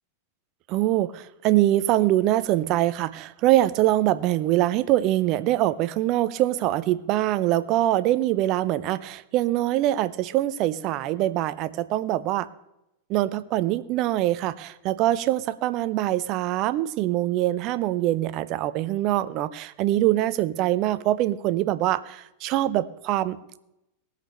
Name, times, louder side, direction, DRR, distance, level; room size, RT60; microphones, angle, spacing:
voice 1, 0.7-12.5 13.1-23.4, right 14 dB, 40° right, 16 dB, 0.7 m, -24 dB
18.0 x 6.8 x 6.7 m, 0.87 s
figure-of-eight pair, 90°, 0 cm